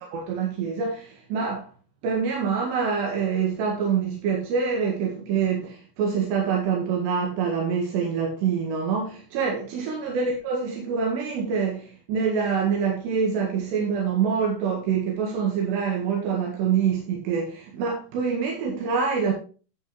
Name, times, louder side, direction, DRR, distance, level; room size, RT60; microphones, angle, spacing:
voice 1, 0.1-1.7 2.0-19.3, right 6 dB, 85° right, 3.9 m, -25 dB
10.5 x 8.3 x 3.0 m
omnidirectional pair, 4.8 m